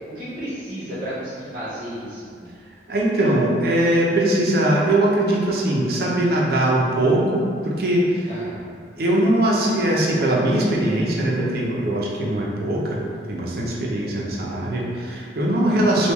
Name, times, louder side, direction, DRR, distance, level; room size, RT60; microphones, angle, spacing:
voice 1, 0.0-2.5 8.3-8.6 15.7-16.0, equal, 30° right, -11 dB, 0.9 m, -33 dB
voice 2, 2.9-8.3 9.0-13.0 13.3-16.1, right 1 dB, 60° right, -3 dB, 0.6 m, -21 dB
3.5 x 2.3 x 2.9 m, 2.3 s
head